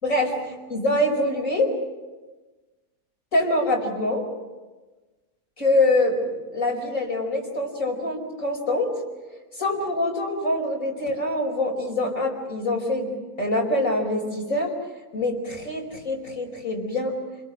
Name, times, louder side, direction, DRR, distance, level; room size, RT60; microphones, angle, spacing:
voice 1, 0.7-1.7 3.3-4.2 5.6-8.9 9.5-13.1 13.4-14.7 15.1-17.1, left 1 dB, 60° left, 0 dB, 5.4 m, -24 dB
28.5 x 22.0 x 6.2 m, 1.2 s
omnidirectional pair, 1.6 m